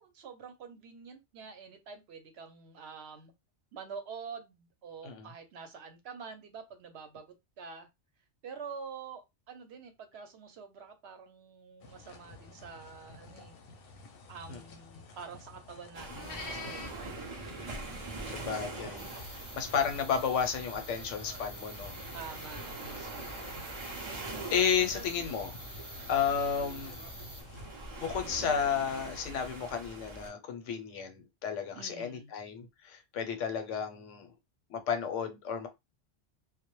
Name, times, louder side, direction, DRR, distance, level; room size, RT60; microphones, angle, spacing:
voice 1, 0.0-3.3 3.7-7.9 8.4-13.6 14.3-17.4 22.1-23.4 31.7-32.3, right 5 dB, 65° right, 0.8 m, -47 dB
sound 1, 11.8-27.7, left 3 dB, 60° left, 0.7 m, -50 dB
sound 2, 15.9-30.3, right 2 dB, 45° right, 0.3 m, -43 dB
voice 2, 18.3-19.1 19.5-22.0 24.1-25.6 26.1-27.0 28.0-34.3 34.7-35.7, left 7 dB, 90° left, 1.0 m, -32 dB
sound 3, 19.0-27.4, equal, 5° right, 0.7 m, -48 dB
2.1 x 2.0 x 2.9 m
omnidirectional pair, 1.2 m